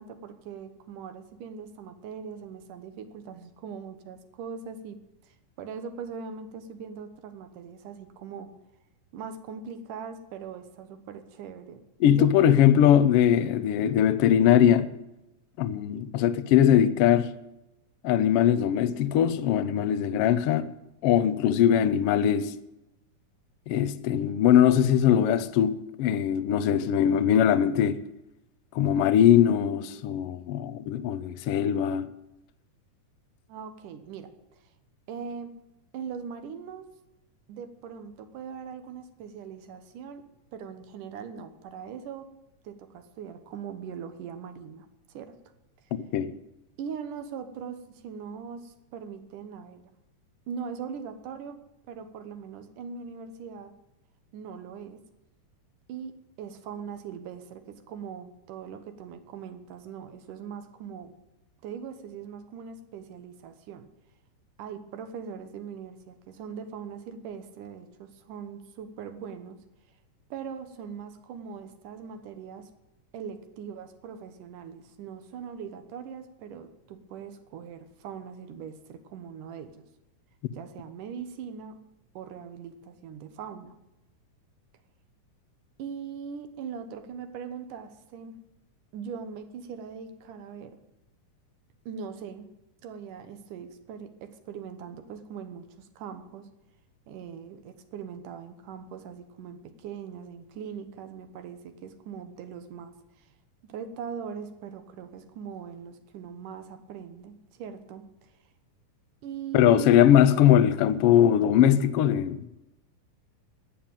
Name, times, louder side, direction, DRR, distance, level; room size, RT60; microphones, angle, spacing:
voice 1, 0.0-5.0 5.2-8.5 9.1-12.6 13.4-13.7 33.5-34.6 35.1-35.5 35.9-36.9 37.5-40.2 40.5-42.3 42.6-45.3 46.8-49.8 50.5-51.6 51.9-53.7 54.3-55.0 55.9-61.1 61.6-63.9 64.6-69.6 70.3-72.7 73.1-79.8 80.5-81.7 82.2-83.7 85.8-88.4 88.9-90.8 91.9-92.5 92.8-96.5 97.1-103.3 103.7-108.3 109.2-109.9, right 6 dB, 75° right, 2.6 m, -41 dB
voice 2, 12.0-14.9 15.6-17.3 18.0-20.7 21.0-22.5 23.7-28.0 28.7-32.1 46.1-46.3 109.5-112.5, left 10 dB, 90° left, 1.3 m, -21 dB
13.5 x 8.7 x 8.9 m
omnidirectional pair, 3.7 m